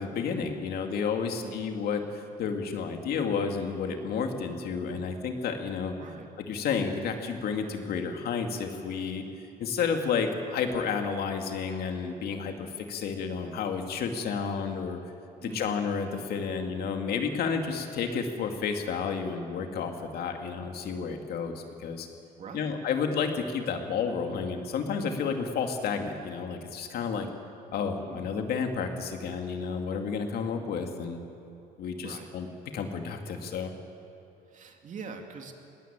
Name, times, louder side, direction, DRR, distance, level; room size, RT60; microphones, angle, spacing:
voice 1, 0.0-5.9 6.5-9.2 9.6-15.0 15.4-22.1 22.5-27.3 27.7-31.2 31.8-32.5 32.7-33.7, left 6 dB, 65° left, 5 dB, 2.4 m, -31 dB
voice 2, 1.2-1.6 6.0-6.3 15.4-15.8 22.4-22.8 28.1-28.4 32.0-32.3 34.5-35.5, right 5 dB, 50° right, 4 dB, 2.5 m, -43 dB
20.5 x 17.0 x 8.9 m, 2.8 s
cardioid pair, 110°, 17 cm